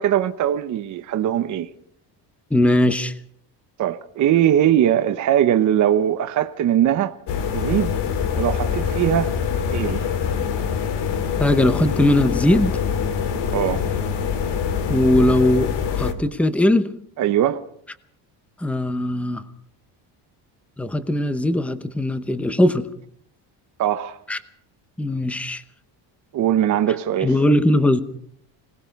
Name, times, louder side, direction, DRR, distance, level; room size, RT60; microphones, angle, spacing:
voice 1, 0.0-1.7 3.8-7.1 7.5-8.0 8.3-9.3 9.7-10.1 13.5-13.9 17.2-17.6 23.8-24.2 26.3-27.3, right 11 dB, 40° right, 0.9 m, -20 dB
voice 2, 2.5-3.1 11.4-12.7 14.9-16.9 18.6-19.4 20.8-22.9 24.3-24.4 25.0-25.6 27.2-28.0, left 1 dB, 5° left, 0.8 m, -19 dB
sound 1, 7.3-16.1, left 7 dB, 70° left, 2.4 m, -24 dB
26.5 x 19.0 x 5.3 m
cardioid pair, 180°, 44 cm